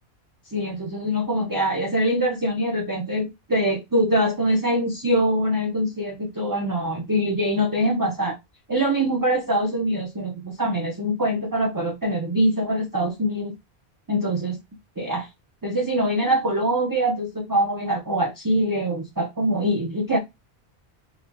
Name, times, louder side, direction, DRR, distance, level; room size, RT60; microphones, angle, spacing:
voice 1, 0.5-8.4 8.7-13.5 14.1-14.5 15.0-15.3 15.6-20.2, equal, 25° right, 0.6 m, -23 dB
3.9 x 2.7 x 2.2 m
omnidirectional pair, 1.1 m